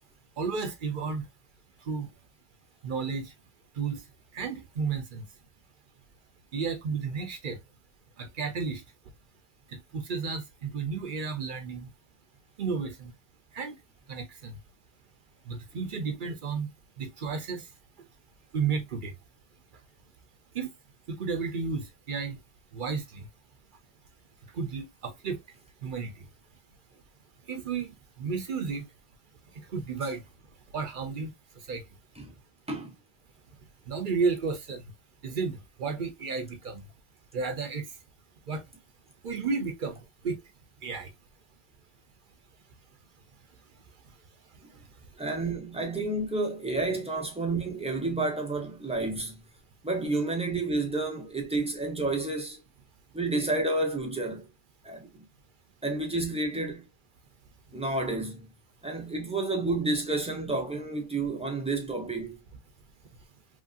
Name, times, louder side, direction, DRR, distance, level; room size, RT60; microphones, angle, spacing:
voice 1, 0.4-1.3 1.9-2.1 2.8-3.3 3.8-4.0 4.3-5.3 6.5-7.6 8.2-8.8 9.7-11.9 12.6-13.1 13.5-13.8 14.1-14.6 15.5-16.7 17.0-17.6 18.5-19.1 20.5-20.7 21.1-22.4 22.7-23.3 24.5-25.4 25.8-26.3 27.5-28.8 29.7-30.2 30.7-31.3 31.7-31.8 33.9-34.8 35.2-36.8 37.3-37.9 38.5-38.6 39.2-40.4 40.8-41.1, right 5 dB, 60° right, 0.7 m, -32 dB
voice 2, 45.2-49.4 49.8-52.6 53.1-54.5 54.8-55.1 55.8-56.9 57.7-58.5 58.8-62.4, right 2 dB, 5° right, 0.6 m, -30 dB
3.1 x 2.6 x 2.3 m
omnidirectional pair, 1.1 m